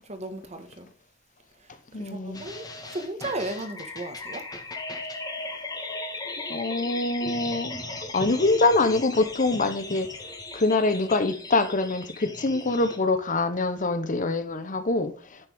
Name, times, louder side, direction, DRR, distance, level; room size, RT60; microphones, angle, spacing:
voice 1, 0.0-0.9 1.6-4.5, right 1 dB, 35° right, 1.6 m, -36 dB
voice 2, 1.9-2.4 6.5-10.1 10.5-15.4, left 2 dB, 40° left, 0.9 m, -25 dB
sound 1, 2.3-13.0, left 2 dB, 20° left, 1.6 m, -37 dB
9.8 x 7.3 x 3.6 m
head